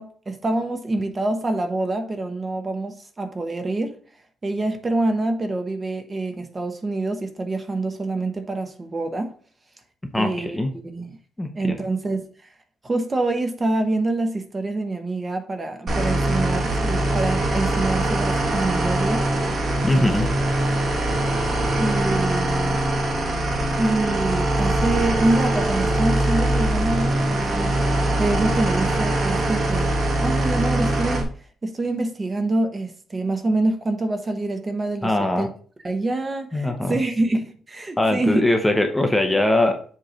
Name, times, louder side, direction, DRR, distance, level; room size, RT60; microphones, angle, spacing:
voice 1, 0.0-4.0 4.4-9.3 10.1-11.2 11.5-12.5 12.8-19.3 19.9-20.3 21.7-22.8 23.8-27.8 28.2-31.3 31.6-35.5 35.8-38.4, right 2 dB, 20° right, 0.8 m, -26 dB
voice 2, 10.1-10.7 11.4-11.8 19.8-20.3 35.0-35.5 36.5-37.0 38.0-39.8, left 1 dB, 5° left, 0.7 m, -21 dB
sound 1, 15.9-31.2, right 1 dB, 45° right, 1.6 m, -22 dB
7.5 x 3.1 x 5.0 m
cardioid pair, 165°, 0 cm